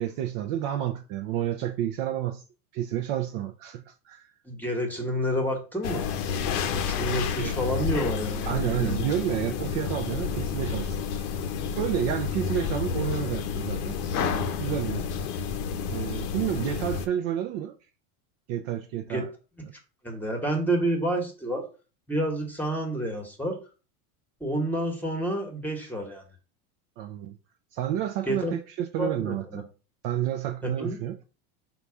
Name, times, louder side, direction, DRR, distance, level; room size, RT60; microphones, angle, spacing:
voice 1, 0.0-2.4 2.7-4.3 7.4-7.5 8.5-11.3 11.8-15.1 15.9-17.8 18.5-19.3 27.0-27.4 27.7-29.6 30.0-31.2, right 11 dB, 50° right, 0.5 m, -30 dB
voice 2, 4.4-6.1 6.7-9.1 19.1-19.2 20.0-21.7 22.1-23.6 24.4-26.2 28.3-28.5 29.0-29.6 30.6-31.0, right 1 dB, 5° left, 1.1 m, -29 dB
sound 1, 5.8-17.1, left 6 dB, 75° left, 0.7 m, -30 dB
4.0 x 2.4 x 4.7 m
supercardioid pair, 120°, 46 cm